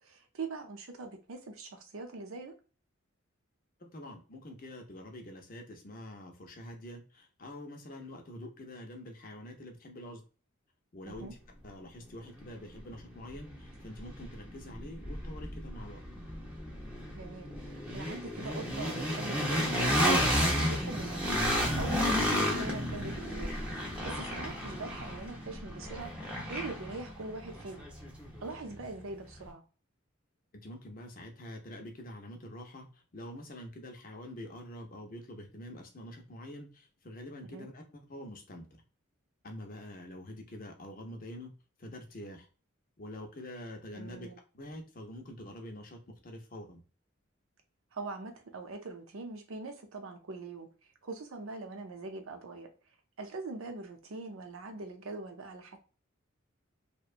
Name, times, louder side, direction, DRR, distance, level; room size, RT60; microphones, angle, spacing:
voice 1, 0.0-2.5 11.1-11.3 17.2-21.2 21.5-23.5 24.0-26.1 26.5-27.9 28.4-29.6 37.4-37.7 43.9-44.4 47.9-50.7 51.0-52.7 53.2-55.8, right 3 dB, 85° right, 0.6 m, -42 dB
voice 2, 3.8-10.2 10.9-11.4 11.6-16.0 30.6-38.7 39.4-41.5 41.8-42.5 43.0-46.8, left 1 dB, 40° left, 0.6 m, -46 dB
sound 1, 12.4-12.5 12.9-28.9, equal, 5° right, 0.6 m, -32 dB
2.7 x 2.1 x 2.4 m
head